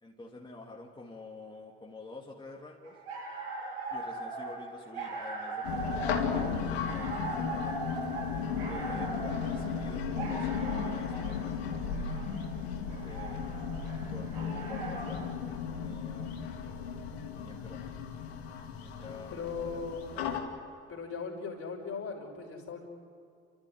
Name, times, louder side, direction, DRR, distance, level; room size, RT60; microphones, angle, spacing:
voice 1, 0.0-3.0 3.9-8.0 8.6-11.6 13.0-13.7 14.1-15.2 15.8-16.3 17.3-17.9 18.8-20.3, left 2 dB, 15° left, -3 dB, 2.8 m, -48 dB
sound 1, 2.8-15.3, right 3 dB, 85° right, 7.9 m, -40 dB
sound 2, 5.6-20.4, left 6 dB, 85° left, 2.3 m, -35 dB
voice 2, 19.3-20.0 20.9-22.9, left 5 dB, 45° left, 1 dB, 5.2 m, -38 dB
29.0 x 13.5 x 9.5 m, 2.4 s
hypercardioid pair, 60°, 30 cm